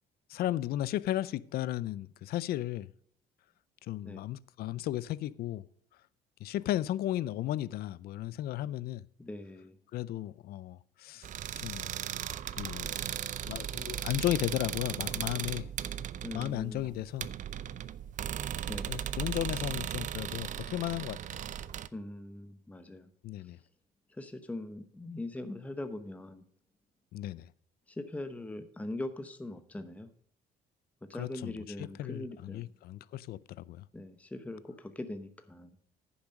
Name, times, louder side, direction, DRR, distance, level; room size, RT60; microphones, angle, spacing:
voice 1, 0.3-2.9 3.9-5.6 6.4-9.0 9.9-11.3 11.5-11.9 12.6-13.0 13.4-15.7 16.3-17.3 18.9-21.4 23.2-23.6 27.1-27.5 31.1-33.9, left 14 dB, 65° left, 0.5 m, -35 dB
voice 2, 9.2-9.8 16.2-16.9 18.7-18.9 21.9-23.1 24.1-26.5 27.9-30.1 31.1-32.7 33.9-35.7, left 2 dB, 10° left, 0.9 m, -41 dB
sound 1, 11.2-21.9, right 10 dB, 50° right, 0.6 m, -37 dB
9.9 x 7.2 x 5.2 m
cardioid pair, 110°, 17 cm